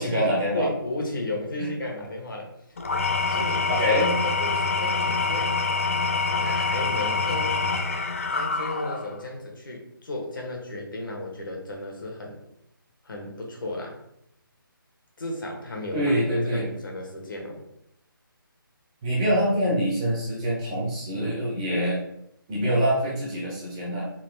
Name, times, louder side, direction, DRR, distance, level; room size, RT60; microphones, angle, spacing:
voice 1, 0.0-0.7 3.7-4.1 15.9-16.7 19.0-22.0 22.5-24.1, equal, 10° right, -6 dB, 0.6 m, -25 dB
voice 2, 0.5-2.5 3.3-5.5 6.4-7.6 8.3-12.4 13.0-14.0 15.2-17.6, left 1 dB, 60° left, 0 dB, 1.2 m, -34 dB
Engine / Tools, 2.8-9.2, left 4 dB, 35° left, 0.3 m, -26 dB
3.9 x 2.7 x 3.2 m, 0.78 s
hypercardioid pair, 170°, 12 cm